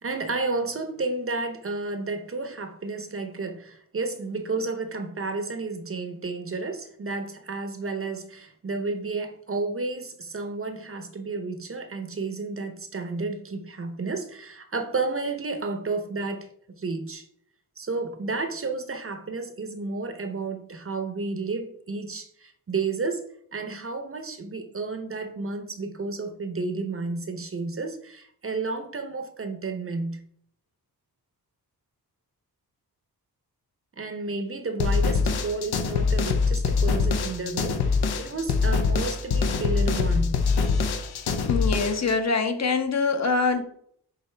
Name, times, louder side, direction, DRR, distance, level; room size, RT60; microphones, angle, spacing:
voice 1, 0.0-16.5 16.8-17.3 17.8-23.2 23.5-30.2 34.0-40.4, right 3 dB, 35° right, 0.7 m, -31 dB
sound 1, 34.8-42.1, left 4 dB, 85° left, 0.8 m, -24 dB
voice 2, 41.4-43.6, left 4 dB, 45° left, 0.9 m, -24 dB
10.5 x 4.0 x 3.3 m
wide cardioid pair, 115°, 37 cm